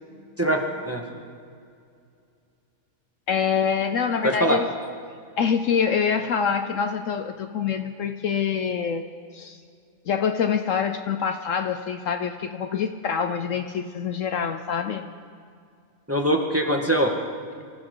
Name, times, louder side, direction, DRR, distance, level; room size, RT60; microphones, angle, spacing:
voice 1, 0.4-1.0 4.2-4.6 16.1-17.1, right 1 dB, 10° right, 1 dB, 1.4 m, -22 dB
voice 2, 3.3-4.7 5.4-9.6 10.1-15.1, left 7 dB, 65° left, 8 dB, 1.0 m, -25 dB
24.5 x 15.0 x 3.9 m, 2.3 s
omnidirectional pair, 1.6 m